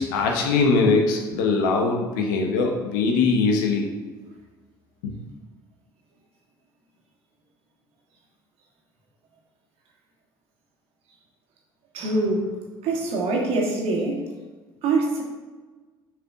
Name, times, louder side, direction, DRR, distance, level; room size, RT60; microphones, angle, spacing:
voice 1, 0.0-3.9 5.0-5.1, left 4 dB, 75° left, 2 dB, 1.0 m, -21 dB
voice 2, 11.9-12.5 12.8-14.2 14.8-15.2, right 3 dB, 60° right, -1 dB, 1.6 m, -24 dB
6.4 x 4.9 x 3.7 m, 1.3 s
hypercardioid pair, 55°, 11 cm